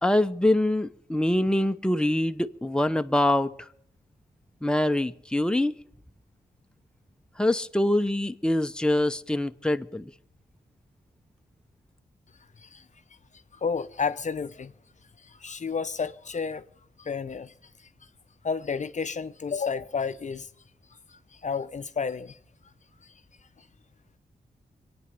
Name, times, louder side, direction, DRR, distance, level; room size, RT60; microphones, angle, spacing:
voice 1, 0.0-3.7 4.6-5.7 7.4-10.1, left 1 dB, 5° left, 0.8 m, -24 dB
voice 2, 13.6-14.7 15.2-16.7 17.0-17.5 18.4-20.5 21.1-22.4, left 5 dB, 50° left, 0.7 m, -31 dB
23.0 x 8.9 x 6.8 m
cardioid pair, 55°, 16 cm